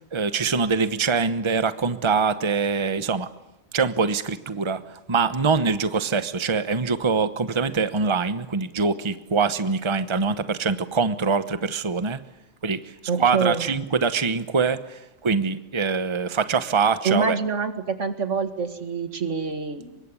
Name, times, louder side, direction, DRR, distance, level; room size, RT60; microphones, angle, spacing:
voice 1, 0.1-3.3 3.7-12.2 12.6-12.8 13.1-17.4, right 5 dB, 25° right, 12 dB, 1.0 m, -24 dB
voice 2, 13.1-13.6 17.0-20.0, right 5 dB, 80° right, 9 dB, 2.2 m, -26 dB
24.5 x 22.5 x 9.8 m, 0.90 s
omnidirectional pair, 1.2 m